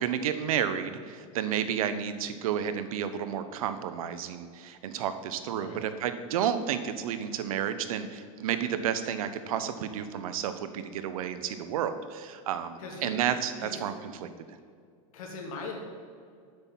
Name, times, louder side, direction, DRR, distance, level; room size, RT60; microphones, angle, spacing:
voice 1, 0.0-14.5, right 9 dB, 80° right, 10 dB, 0.9 m, -31 dB
voice 2, 5.4-5.8 12.8-13.2 13.6-13.8 15.1-15.8, left 4 dB, 80° left, 1 dB, 2.4 m, -40 dB
8.0 x 5.9 x 7.2 m, 2.2 s
supercardioid pair, 160°, 18 cm